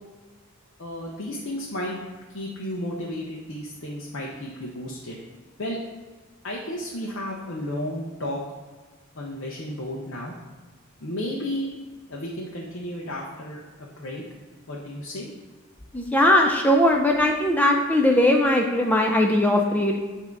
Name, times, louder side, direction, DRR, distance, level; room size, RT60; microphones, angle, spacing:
voice 1, 0.8-2.0 2.3-5.2 5.6-5.8 6.4-8.4 9.2-10.3 11.0-11.7 12.1-14.2 14.7-15.3, left 1 dB, 70° left, -3 dB, 0.8 m, -33 dB
voice 2, 15.9-20.0, left 1 dB, 10° left, 1 dB, 0.4 m, -19 dB
8.4 x 2.8 x 4.5 m, 1.4 s
head